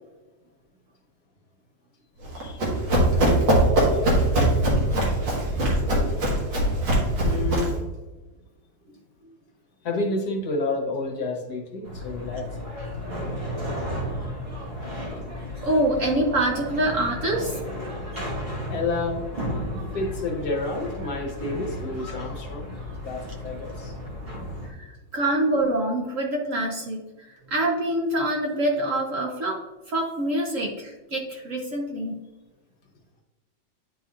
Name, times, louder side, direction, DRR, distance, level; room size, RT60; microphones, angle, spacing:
Run, 2.2-7.8, right 1 dB, 80° right, 2.3 m, -21 dB
voice 1, 2.3-2.7 3.8-4.1 6.1-6.2 7.2-7.8 9.8-12.7 18.0-18.1 18.7-19.2 19.9-23.9, left 3 dB, 60° left, 1 dB, 1.5 m, -30 dB
sound 1, 11.8-24.7, equal, 35° right, 1.7 m, -34 dB
voice 2, 15.5-17.6 24.6-29.6 29.9-32.2, right 1 dB, 55° right, 0 dB, 1.1 m, -25 dB
10.5 x 4.1 x 2.4 m, 1.2 s
omnidirectional pair, 2.0 m